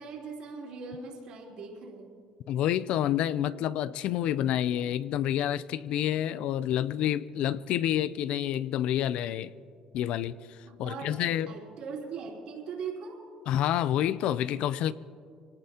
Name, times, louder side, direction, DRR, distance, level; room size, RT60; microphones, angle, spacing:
voice 1, 0.0-2.2 10.6-13.2, right 5 dB, 55° right, 3.3 m, -40 dB
voice 2, 2.5-9.5 9.9-11.5 13.5-14.9, left 11 dB, 60° left, 0.4 m, -28 dB
25.5 x 18.5 x 2.9 m
cardioid pair, 170°, 2 cm